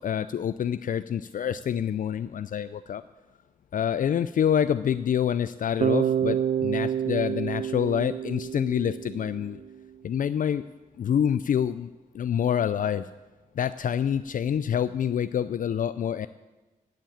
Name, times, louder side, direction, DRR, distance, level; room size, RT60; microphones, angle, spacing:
voice 1, 0.0-3.0 3.7-9.6 10.0-10.6 11.0-11.9 12.1-13.1 13.6-16.3, left 9 dB, 65° left, 13 dB, 0.4 m, -27 dB
Bass guitar, 5.8-9.8, right 9 dB, 65° right, 0.4 m, -28 dB
10.5 x 7.4 x 8.6 m, 1.2 s
cardioid pair, 60°, 15 cm